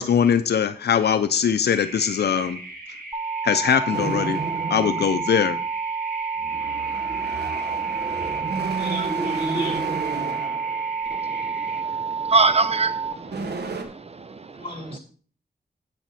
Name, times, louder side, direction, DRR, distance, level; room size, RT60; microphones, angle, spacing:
voice 1, 0.0-2.6 3.4-4.4 4.7-5.6, left 7 dB, 85° left, 0.5 m, -21 dB
sound 1, 1.7-11.8, right 1 dB, 60° right, 5.4 m, -39 dB
sound 2, 3.1-13.1, right 4 dB, 20° right, 1.1 m, -29 dB
sound 3, 3.9-5.6 6.4-11.2 11.8-12.1 12.8-12.9 13.1-13.8, right 4 dB, 85° right, 1.3 m, -32 dB
voice 2, 8.8-9.9 14.5-15.0, right 1 dB, 35° left, 3.6 m, -32 dB
voice 3, 11.1-14.6, right 3 dB, 40° right, 0.5 m, -25 dB
9.0 x 8.5 x 4.2 m
wide cardioid pair, 95°, 17 cm